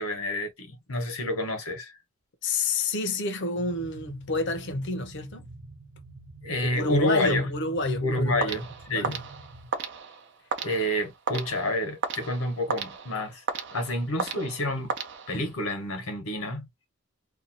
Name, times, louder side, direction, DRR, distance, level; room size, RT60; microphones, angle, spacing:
voice 1, 0.0-1.9 6.4-7.5 8.0-9.2 10.6-13.4 13.7-14.9 15.3-16.7, left 1 dB, 90° left, 1.1 m, -29 dB
voice 2, 2.4-5.5 6.6-8.6 8.9-9.2, left 2 dB, 55° left, 0.6 m, -29 dB
sound 1, 3.5-9.7, right 2 dB, 85° right, 0.9 m, -47 dB
sound 2, 8.4-15.7, right 5 dB, 55° right, 0.6 m, -35 dB
2.7 x 2.3 x 2.6 m
head